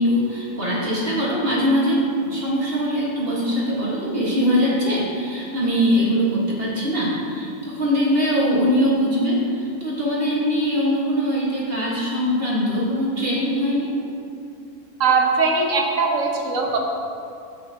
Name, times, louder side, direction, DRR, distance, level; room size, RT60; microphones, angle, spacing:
voice 1, 0.0-13.9, equal, 40° right, -6 dB, 1.7 m, -22 dB
voice 2, 15.0-16.8, right 4 dB, 60° right, 1 dB, 1.3 m, -20 dB
10.0 x 8.3 x 2.8 m, 2.5 s
omnidirectional pair, 1.7 m